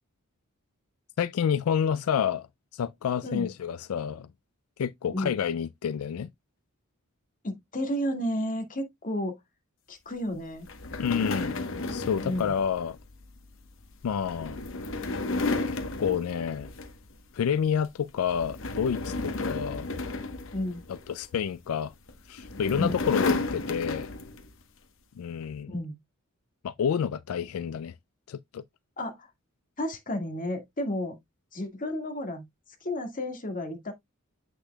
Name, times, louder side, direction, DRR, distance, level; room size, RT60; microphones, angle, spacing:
voice 1, 1.2-2.5 2.7-4.3 4.8-6.3 11.0-11.6 11.9-13.0 14.0-14.6 15.7-16.7 17.3-19.9 20.9-21.9 22.3-24.1 25.2-25.7 26.6-27.9 28.3-28.6, left 7 dB, 85° left, 0.4 m, -29 dB
voice 2, 7.4-9.4 9.9-10.7 12.2-12.5 20.5-20.8 22.8-23.0 25.7-25.9 29.0-29.3 29.8-31.2 31.5-32.4 32.8-33.9, left 1 dB, 40° left, 1.8 m, -32 dB
sound 1, 10.7-17.2 17.6-17.9 18.3-21.3 22.1-24.5, left 2 dB, 65° left, 1.1 m, -33 dB
8.1 x 6.2 x 2.3 m
head